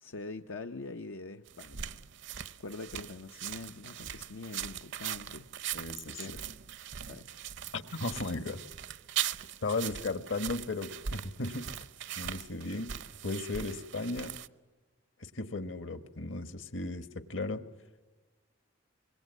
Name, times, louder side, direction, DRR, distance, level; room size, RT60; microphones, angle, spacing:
voice 1, 0.0-1.9 2.6-6.5 7.1-7.3, left 3 dB, 85° left, 5 dB, 0.8 m, -44 dB
sound 1, 1.5-14.5, right 10 dB, 65° right, 0.7 m, -40 dB
voice 2, 5.7-6.4 7.7-8.6 9.6-11.7 12.2-12.9 13.2-14.3 15.2-17.6, left 2 dB, 70° left, 12 dB, 1.4 m, -36 dB
25.5 x 22.0 x 8.2 m, 1.3 s
head